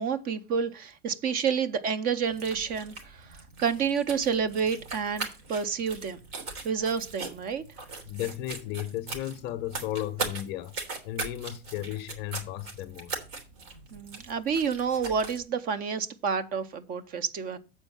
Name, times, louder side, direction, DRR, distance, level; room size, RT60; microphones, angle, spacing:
voice 1, 0.0-6.2 6.6-7.6 13.9-17.6, right 6 dB, 30° right, 0.6 m, -29 dB
sound 1, 2.2-15.4, right 3 dB, 55° right, 2.8 m, -40 dB
voice 2, 8.1-10.8 11.0-13.1, left 13 dB, 35° left, 0.5 m, -34 dB
7.9 x 4.5 x 7.1 m
supercardioid pair, 155°, 31 cm